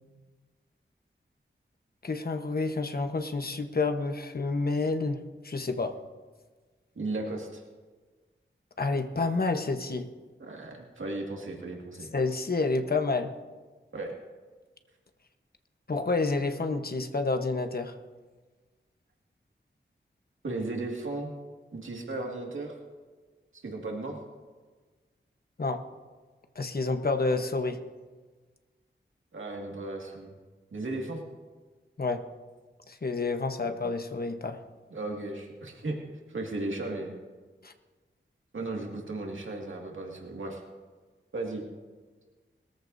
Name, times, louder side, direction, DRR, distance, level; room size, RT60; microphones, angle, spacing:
voice 1, 2.0-6.0 8.8-10.1 12.1-13.3 15.9-17.9 25.6-25.8 26.5-27.8 32.0-32.2 32.9-34.6 37.6-37.7, left 3 dB, 50° left, 6 dB, 1.1 m, -29 dB
voice 2, 7.0-7.6 10.4-12.1 13.9-14.1 20.4-21.3 21.7-22.8 23.5-24.2 29.3-30.3 30.7-31.2 33.6-33.8 34.9-36.0 36.3-37.1 38.5-40.6 41.3-41.6, right 2 dB, 85° right, 0 dB, 2.1 m, -35 dB
21.0 x 14.0 x 2.7 m, 1.4 s
wide cardioid pair, 85°, 20 cm